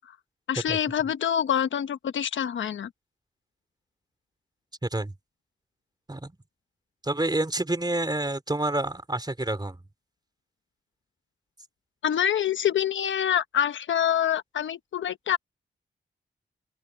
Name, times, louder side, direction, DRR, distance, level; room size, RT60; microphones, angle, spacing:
voice 1, 0.5-2.9 12.0-15.4, left 9 dB, 85° left, 1.1 m, -26 dB
voice 2, 4.8-5.1 6.1-6.3 7.0-9.8, right 2 dB, 20° right, 3.5 m, -28 dB
open air
cardioid pair, 45°, 19 cm